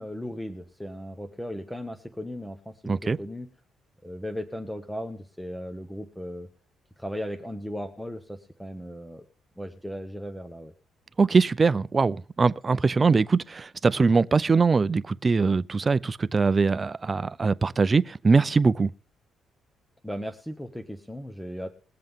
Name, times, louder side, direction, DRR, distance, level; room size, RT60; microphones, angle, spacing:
voice 1, 0.0-3.5 4.0-6.5 7.0-9.2 9.6-10.7 20.0-21.7, equal, 5° left, 1.1 m, -36 dB
voice 2, 2.9-3.2 11.2-18.9, right 4 dB, 30° right, 0.5 m, -22 dB
21.0 x 7.6 x 3.6 m
cardioid pair, 90°, 0 cm